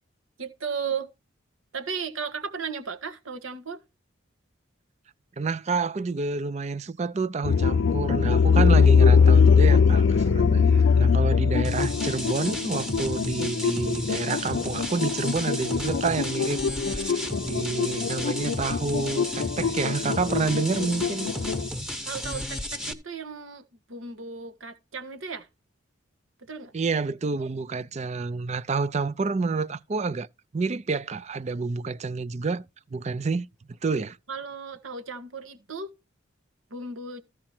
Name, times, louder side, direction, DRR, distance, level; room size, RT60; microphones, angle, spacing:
voice 1, 0.4-1.1 1.7-3.8 22.0-25.5 26.4-26.7 34.3-35.9 36.7-37.2, right 5 dB, 90° right, 1.5 m, -35 dB
voice 2, 5.4-21.3 26.7-30.3 30.5-32.6 32.9-33.5 33.8-34.2, right 4 dB, 35° right, 0.4 m, -29 dB
sound 1, 7.4-21.7, left 5 dB, 70° left, 0.4 m, -22 dB
sound 2, 11.6-22.9, equal, 5° right, 0.9 m, -34 dB
14.5 x 4.9 x 4.4 m
head